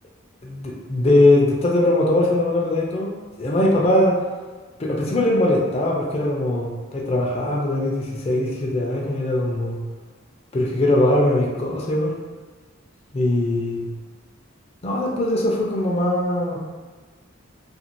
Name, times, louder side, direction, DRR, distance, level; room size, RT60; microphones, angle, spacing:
voice 1, 0.4-4.2 4.8-9.8 10.5-12.1 13.1-13.9 14.8-16.6, left 1 dB, 30° left, -2 dB, 0.3 m, -21 dB
2.5 x 2.3 x 3.0 m, 1.3 s
head